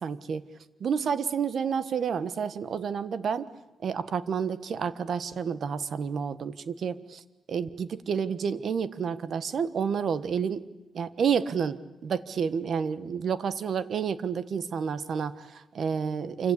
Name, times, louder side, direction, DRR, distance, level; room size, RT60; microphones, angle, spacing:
voice 1, 0.0-0.4 0.8-3.5 3.8-7.2 7.5-10.6 10.9-16.5, right 7 dB, 55° right, 14 dB, 1.3 m, -30 dB
27.5 x 25.5 x 8.5 m, 0.98 s
cardioid pair, 135°, 0 cm